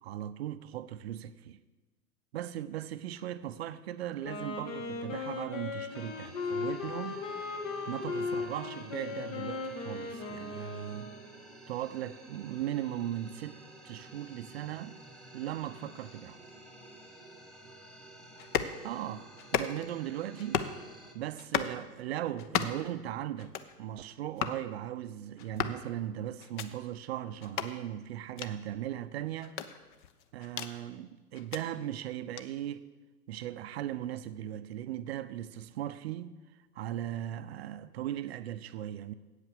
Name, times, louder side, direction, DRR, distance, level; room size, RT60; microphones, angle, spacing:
voice 1, 0.0-1.6 2.3-7.2 7.9-11.1 11.7-13.6 13.8-15.0 15.3-16.4 18.8-19.3 19.5-20.6 21.1-29.6 30.3-32.9 33.3-36.3 36.8-39.1, right 12 dB, 45° right, 0.5 m, -38 dB
Wind instrument woodwind instrument, 4.1-11.3, left 4 dB, 55° left, 1.9 m, -37 dB
sound 1, 5.9-21.1, right 1 dB, ahead, 1.0 m, -52 dB
sound 2, 18.4-18.8 19.4-19.9 20.4-20.8 21.4-21.8 22.4-22.9 23.4-23.7 24.4-24.6 25.4-25.8 26.4-26.7 27.4-27.7 28.4-28.5 29.4-30.7 31.3-31.6 32.4-32.5, left 9 dB, 30° left, 0.5 m, -34 dB
8.2 x 8.2 x 6.8 m
figure-of-eight pair, 110°, 48 cm